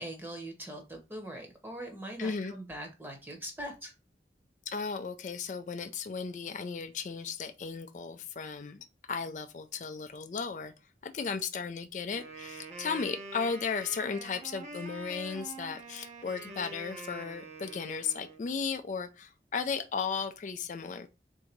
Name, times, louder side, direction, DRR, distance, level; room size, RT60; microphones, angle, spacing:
voice 1, 0.0-3.9, right 1 dB, 10° right, 0.9 m, -42 dB
voice 2, 2.2-2.5 4.7-10.7 11.0-21.1, left 5 dB, 45° left, 0.3 m, -35 dB
Wind instrument woodwind instrument, 12.2-18.4, right 3 dB, 40° right, 0.7 m, -45 dB
3.7 x 2.6 x 4.5 m
head